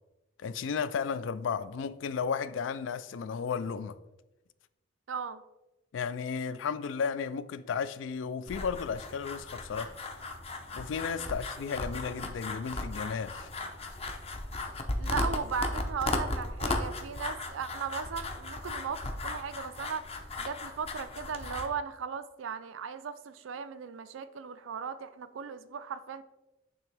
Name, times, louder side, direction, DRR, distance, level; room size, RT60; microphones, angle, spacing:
voice 1, 0.4-3.9 5.9-9.9 10.7-13.5, left 6 dB, 70° left, 0.3 m, -34 dB
voice 2, 5.1-5.4 11.2-11.3 15.0-20.0 20.4-26.2, right 6 dB, 90° right, 0.4 m, -37 dB
sound 1, 8.5-21.7, left 2 dB, 30° left, 0.6 m, -36 dB
8.5 x 3.5 x 3.3 m
head